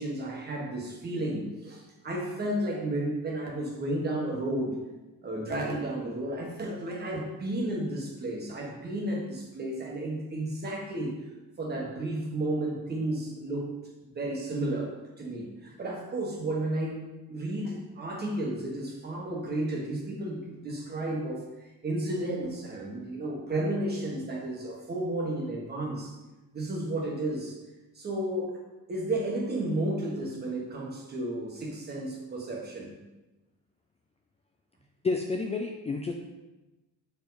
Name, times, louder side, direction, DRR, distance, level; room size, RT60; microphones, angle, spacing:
voice 1, 0.0-4.8 5.2-11.2 11.6-13.7 14.1-14.9 15.2-21.4 21.8-26.1 26.5-27.6 27.9-28.6 28.9-32.9, right 1 dB, 30° right, -2 dB, 1.5 m, -32 dB
voice 2, 35.0-36.1, left 3 dB, 20° left, 2 dB, 0.4 m, -30 dB
6.8 x 4.7 x 4.0 m, 1.1 s
cardioid pair, 150°, 33 cm